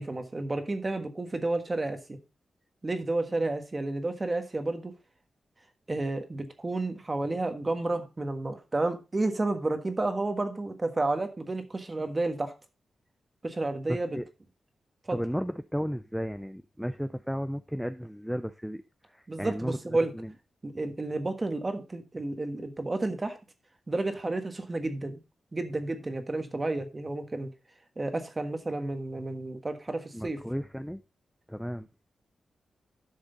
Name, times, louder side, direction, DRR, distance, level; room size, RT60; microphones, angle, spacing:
voice 1, 0.0-2.2 2.8-4.9 5.9-12.5 13.4-14.2 15.1-15.2 19.3-20.1 20.6-23.4 23.9-25.2 25.5-27.5 28.0-30.4, right 2 dB, 20° right, 1.4 m, -31 dB
voice 2, 13.9-14.3 15.1-20.3 30.1-31.0 31.5-31.9, equal, ahead, 0.4 m, -34 dB
12.0 x 6.3 x 3.9 m
wide cardioid pair, 150°, 0 cm